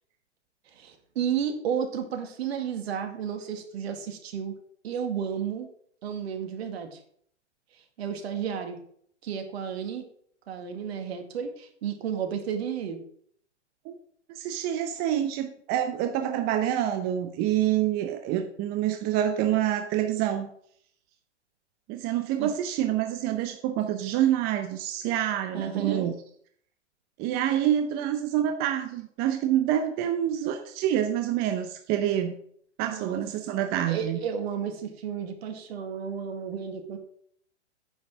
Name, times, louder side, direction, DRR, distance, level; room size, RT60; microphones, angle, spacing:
voice 1, 0.8-4.6 4.8-5.7 6.0-7.0 8.0-8.8 9.2-10.1 10.5-13.0 22.4-22.5 25.5-26.1 32.9-33.2 33.7-37.0, right 7 dB, 60° right, 6 dB, 2.1 m, -32 dB
voice 2, 14.3-20.5 21.9-26.1 27.2-32.4 32.8-34.2, right 11 dB, 25° right, 7 dB, 0.7 m, -27 dB
9.4 x 5.9 x 6.4 m, 0.64 s
hypercardioid pair, 130°, 36 cm